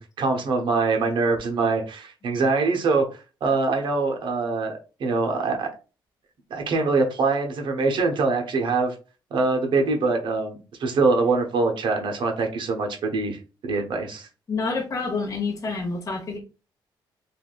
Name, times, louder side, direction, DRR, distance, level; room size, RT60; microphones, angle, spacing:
voice 1, 0.0-3.0 3.4-5.7 6.5-8.9 9.3-14.3, right 3 dB, 70° right, 0.8 m, -24 dB
voice 2, 14.5-16.4, left 4 dB, 40° left, 0.9 m, -28 dB
3.4 x 2.4 x 2.3 m
cardioid pair, 120°, 9 cm